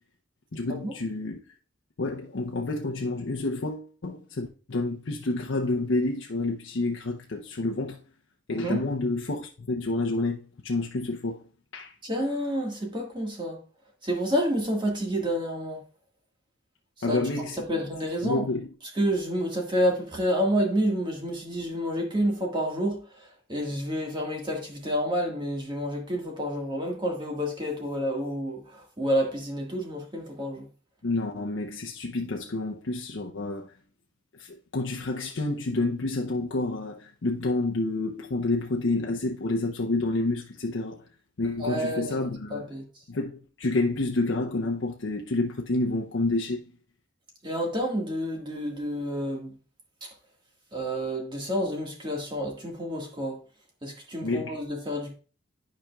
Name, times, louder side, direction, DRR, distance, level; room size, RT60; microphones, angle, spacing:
voice 1, 0.5-1.4 2.0-8.0 8.5-11.4 11.7-11.9 17.0-17.8 18.2-18.7 31.0-33.7 34.4-41.0 41.4-42.7 43.1-46.7 54.2-54.6, left 2 dB, 60° left, 0.6 m, -29 dB
voice 2, 12.0-13.6 14.0-15.8 17.1-17.2 17.7-18.4 18.9-30.6 41.6-42.2 42.5-42.8 47.4-49.5 50.0-50.1 50.7-53.4 53.8-55.1, equal, 25° right, 1.6 m, -29 dB
11.5 x 5.1 x 2.3 m
head